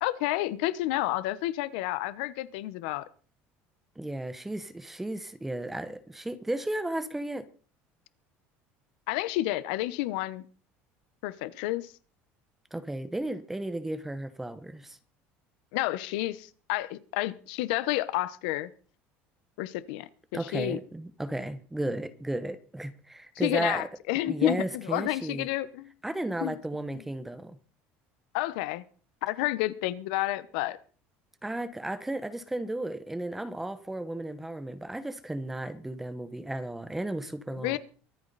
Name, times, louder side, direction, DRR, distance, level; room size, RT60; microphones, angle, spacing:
voice 1, 0.0-3.1 9.1-10.5 11.2-11.9 15.7-18.7 19.6-20.8 23.4-25.9 26.4-26.6 26.9-27.1 28.3-28.8 29.2-30.8 37.5-37.8, left 16 dB, 85° left, 1.1 m, -30 dB
voice 2, 4.0-7.5 12.7-15.0 20.3-23.8 24.3-25.5 26.0-27.6 31.4-37.8, right 1 dB, 5° right, 0.9 m, -34 dB
24.0 x 8.8 x 4.1 m
cardioid pair, 175°, 5 cm